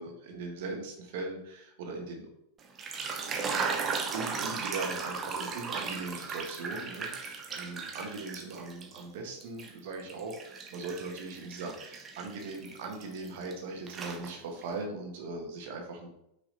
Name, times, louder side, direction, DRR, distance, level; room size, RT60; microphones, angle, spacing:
voice 1, 0.0-2.3 3.2-3.7 4.1-16.1, right 3 dB, 50° right, 2 dB, 1.5 m, -39 dB
sound 1, 2.6-9.0 9.4-13.5 13.9-14.7, right 5 dB, 25° right, 0.9 m, -37 dB
6.0 x 5.0 x 3.9 m, 0.79 s
figure-of-eight pair, 90°, 0 cm